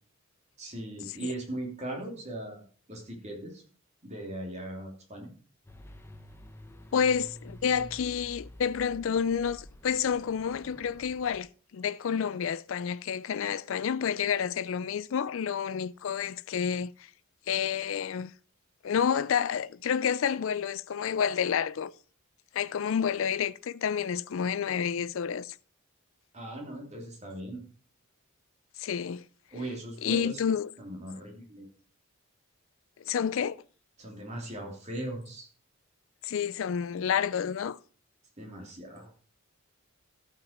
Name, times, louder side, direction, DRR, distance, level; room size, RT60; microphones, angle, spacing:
voice 1, 0.6-3.6 4.0-5.3 26.3-27.6 29.5-30.4 30.8-31.7 34.0-35.5 38.4-39.1, right 1 dB, 30° right, 2.9 m, -39 dB
sound 1, 5.7-11.4, equal, 10° left, 0.8 m, -49 dB
voice 2, 6.9-11.5 11.7-16.9 17.5-18.3 18.8-21.9 22.5-25.6 28.8-29.2 30.0-30.7 33.1-33.6 36.2-37.8, left 7 dB, 65° left, 0.4 m, -29 dB
13.5 x 5.8 x 5.2 m
head